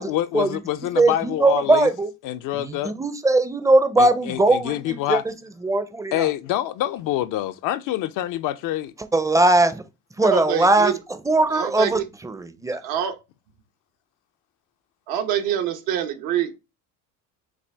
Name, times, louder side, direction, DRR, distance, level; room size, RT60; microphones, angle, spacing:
voice 1, 0.0-1.9 2.2-2.9 4.0-5.2 6.1-8.9, left 13 dB, 65° left, 0.5 m, -26 dB
voice 2, 1.0-2.1 2.5-5.3 5.6-6.3 9.1-9.8 10.2-10.9 11.2-12.8, right 2 dB, 10° right, 0.5 m, -20 dB
voice 3, 10.2-11.0 11.5-12.0 12.8-13.2 15.1-16.6, right 9 dB, 75° right, 0.9 m, -25 dB
6.1 x 2.4 x 3.4 m
cardioid pair, 110°, 35 cm